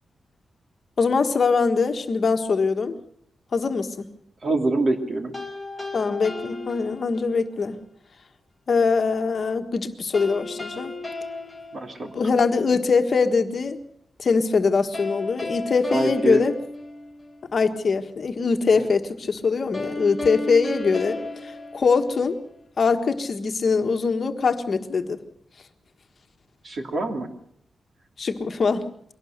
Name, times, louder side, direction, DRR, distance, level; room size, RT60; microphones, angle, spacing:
voice 1, 1.0-2.9 3.5-4.1 5.9-7.8 8.7-10.9 12.1-13.8 14.2-16.5 17.5-22.4 22.8-25.2 28.2-28.8, left 4 dB, 45° left, 6 dB, 1.5 m, -22 dB
voice 2, 4.4-5.3 11.7-12.1 15.9-16.4 26.6-27.3, right 2 dB, 45° right, 5 dB, 2.9 m, -24 dB
sound 1, 5.3-7.5 10.1-12.6 14.9-17.5 19.7-22.6, left 2 dB, 5° left, 2.3 m, -34 dB
22.5 x 18.0 x 6.6 m, 0.66 s
wide cardioid pair, 145°, 0 cm